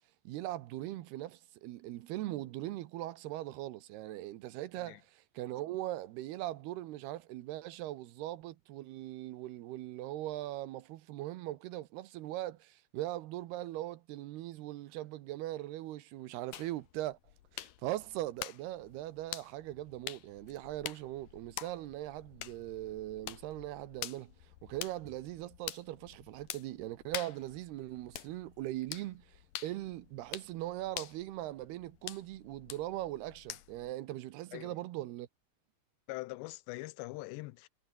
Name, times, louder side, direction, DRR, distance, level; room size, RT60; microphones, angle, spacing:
voice 1, 0.3-5.0 5.4-17.2 17.5-35.3, right 15 dB, 75° right, 2.8 m, -40 dB
sound 1, 16.5-33.9, left 13 dB, 65° left, 2.5 m, -47 dB
voice 2, 36.1-37.7, left 21 dB, 85° left, 2.9 m, -43 dB
omnidirectional pair, 4.9 m